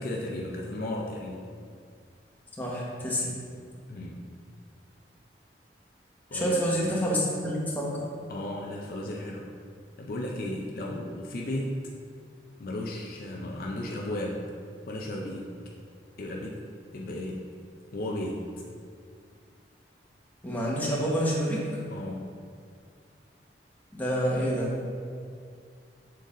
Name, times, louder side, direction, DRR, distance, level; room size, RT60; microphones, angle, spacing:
voice 1, 0.0-1.5 3.9-4.2 6.3-7.0 8.3-9.5 10.0-11.8 12.6-14.5 14.9-15.5 16.2-16.6 16.9-17.5 17.9-18.5 21.9-22.4, left 1 dB, 55° left, -1 dB, 0.5 m, -34 dB
voice 2, 2.6-3.3 6.3-7.9 20.4-21.6 23.9-24.7, equal, 10° left, -5 dB, 1.1 m, -28 dB
6.8 x 3.9 x 3.7 m, 2.2 s
head